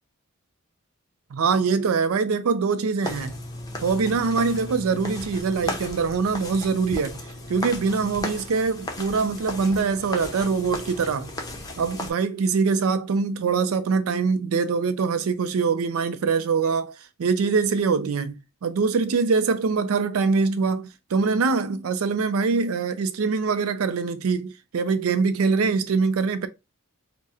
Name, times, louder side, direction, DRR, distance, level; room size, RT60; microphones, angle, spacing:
voice 1, 1.3-3.3 3.8-7.2 7.5-11.3 11.8-16.9 17.2-26.5, right 4 dB, 90° right, 0.4 m, -23 dB
sound 1, 3.0-12.1, left 1 dB, 20° left, 0.6 m, -35 dB
2.7 x 2.1 x 3.6 m
head